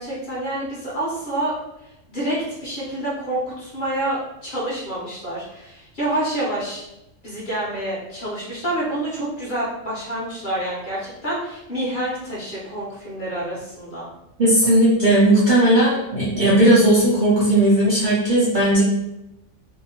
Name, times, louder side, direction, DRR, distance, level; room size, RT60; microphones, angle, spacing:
voice 1, 0.0-1.5 2.1-6.8 7.2-14.1, right 1 dB, 45° left, -7 dB, 0.9 m, -28 dB
voice 2, 14.4-18.8, right 1 dB, 55° right, -7 dB, 0.6 m, -16 dB
2.7 x 2.1 x 2.8 m, 0.90 s
omnidirectional pair, 1.3 m